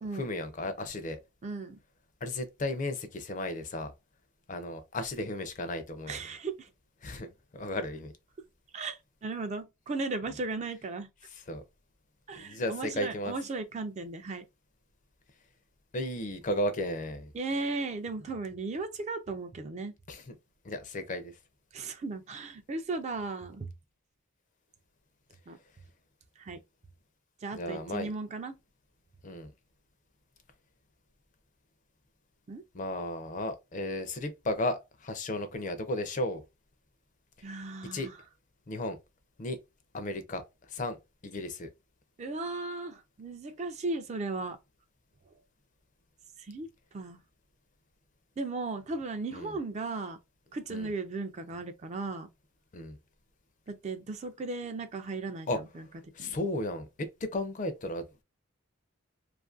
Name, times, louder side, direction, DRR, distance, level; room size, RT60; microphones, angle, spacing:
voice 1, 0.1-1.2 2.2-3.9 4.5-6.2 7.0-8.1 11.3-11.6 12.4-13.3 15.9-17.3 20.1-20.3 20.6-21.4 27.5-28.1 29.2-29.5 32.7-36.4 37.9-38.1 38.7-39.0 39.4-39.6 39.9-41.7 49.3-49.6 50.7-50.9 52.7-53.0 55.5-55.6 56.1-58.2, left 1 dB, 35° left, 0.5 m, -34 dB
voice 2, 1.4-1.8 6.1-6.7 8.7-11.1 12.3-14.4 17.3-19.9 21.7-23.7 25.5-25.6 26.4-26.6 27.4-28.5 32.5-32.6 37.4-38.1 42.2-44.6 46.5-46.7 46.9-47.2 48.4-50.2 50.5-52.3 53.7-55.6 56.2-56.3, right 3 dB, 30° right, 0.3 m, -36 dB
2.5 x 2.5 x 2.4 m
head